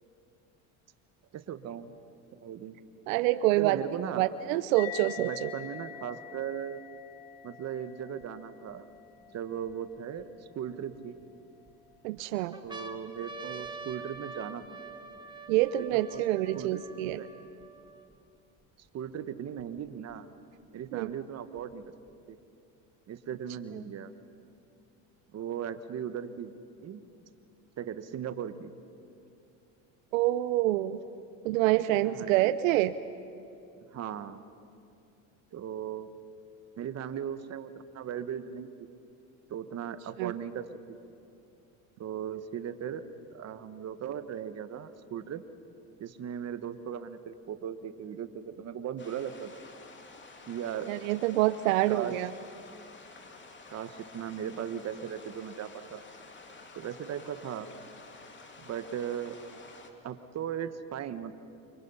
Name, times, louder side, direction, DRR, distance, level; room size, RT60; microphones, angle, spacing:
voice 1, 1.3-1.9 2.4-2.8 3.6-4.2 5.3-6.8 7.4-8.9 9.3-10.3 10.5-11.2 12.6-14.8 15.8-16.2 16.5-17.3 18.9-20.3 20.7-21.8 22.3-22.4 23.1-24.1 25.3-26.5 26.8-27.0 27.8-28.7 32.0-32.5 33.9-34.4 35.5-36.1 36.8-38.9 39.5-41.0 42.0-43.0 43.3-45.4 46.0-49.6 50.5-50.9 51.9-52.2 53.7-56.0 56.7-57.7 58.6-59.4 60.0-61.3, right 9 dB, 40° right, 11 dB, 1.4 m, -38 dB
voice 2, 3.1-3.8 4.1-5.5 12.0-12.6 15.5-17.2 20.9-21.1 30.1-31.0 31.4-32.9 40.2-40.3 50.9-52.3, right 15 dB, 80° right, 13 dB, 0.7 m, -26 dB
sound 1, 4.8-11.7, left 12 dB, 75° left, 2.0 m, -46 dB
sound 2, 8.2-8.3 9.0-10.2 10.9-11.7 12.2-12.3 12.5-18.2 18.9-19.0 19.1-20.1 21.1-22.1, right 4 dB, 10° right, 1.7 m, -46 dB
sound 3, 49.0-59.9, left 3 dB, 30° left, 2.9 m, -51 dB
29.0 x 24.5 x 5.7 m, 2.6 s
supercardioid pair, 100°, 39 cm